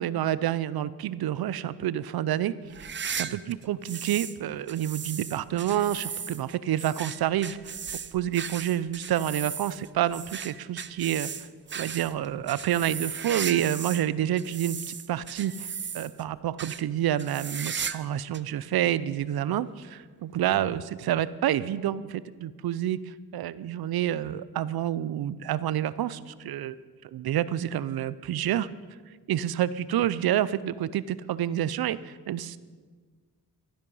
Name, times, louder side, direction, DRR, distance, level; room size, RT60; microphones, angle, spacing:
voice 1, 0.0-7.8 8.1-11.3 11.7-26.8 27.0-28.7 29.3-32.6, right 11 dB, 70° right, 17 dB, 0.6 m, -28 dB
sound 1, 2.7-4.4 4.7-14.1 14.4-16.2 16.6-16.8 17.2-18.1 18.3-18.4 19.2-19.3 20.6-20.7, right 7 dB, 30° right, 0.5 m, -36 dB
13.0 x 12.5 x 5.4 m, 1.5 s
cardioid pair, 70°, 38 cm